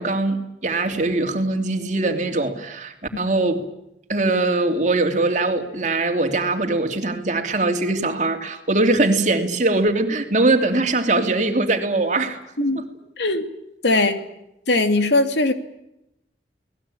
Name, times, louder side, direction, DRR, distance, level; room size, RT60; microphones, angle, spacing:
voice 1, 0.0-3.7 4.1-12.4 12.7-12.8, right 2 dB, 40° right, 5 dB, 3.0 m, -21 dB
voice 2, 13.2-13.5 13.8-14.2 14.7-15.5, left 2 dB, 80° left, 7 dB, 2.8 m, -19 dB
30.0 x 19.5 x 8.8 m, 0.85 s
head